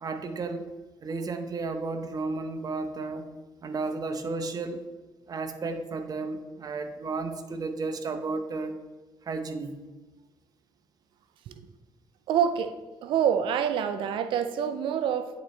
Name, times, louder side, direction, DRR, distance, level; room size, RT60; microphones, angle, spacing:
voice 1, 0.0-0.7 1.0-3.3 3.6-4.9 5.3-8.8 9.2-9.8, right 3 dB, 50° right, 6 dB, 0.8 m, -33 dB
voice 2, 12.3-12.8 13.0-15.4, right 8 dB, 85° right, 10 dB, 0.4 m, -26 dB
10.5 x 4.1 x 3.2 m, 1.3 s
cardioid pair, 75°, 8 cm